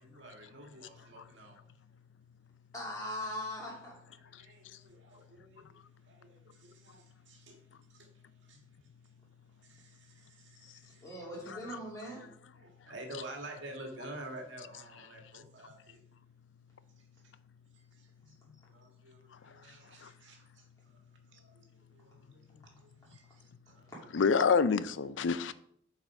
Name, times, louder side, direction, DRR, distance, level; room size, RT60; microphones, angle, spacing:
voice 1, 0.0-1.6 4.2-5.8 6.1-7.6 7.9-8.1 8.5-8.6 9.7-11.1 11.5-11.6 12.5-16.0 18.0-18.3 18.7-20.6 21.3-23.9, right 1 dB, 75° right, 2 dB, 1.8 m, -50 dB
voice 2, 2.7-4.0 11.0-12.3, left 1 dB, 20° left, -6 dB, 2.7 m, -40 dB
voice 3, 24.1-25.5, left 5 dB, 80° left, 15 dB, 0.5 m, -27 dB
7.5 x 4.9 x 4.8 m, 0.67 s
head